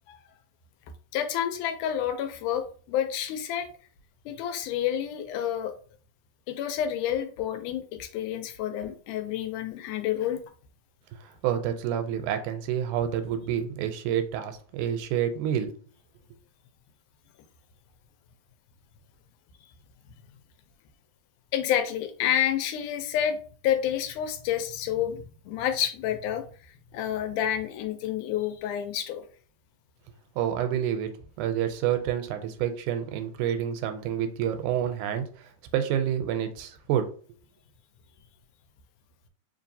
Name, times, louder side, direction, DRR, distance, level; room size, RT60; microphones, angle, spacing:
voice 1, 1.1-3.7 4.3-5.7 6.5-10.4 21.5-23.4 23.6-26.5 26.9-29.3, left 10 dB, 85° left, 8 dB, 2.1 m, -29 dB
voice 2, 11.2-15.7 30.4-31.1 31.4-37.1, right 9 dB, 85° right, 8 dB, 2.0 m, -28 dB
4.5 x 3.0 x 2.7 m, 0.42 s
omnidirectional pair, 3.5 m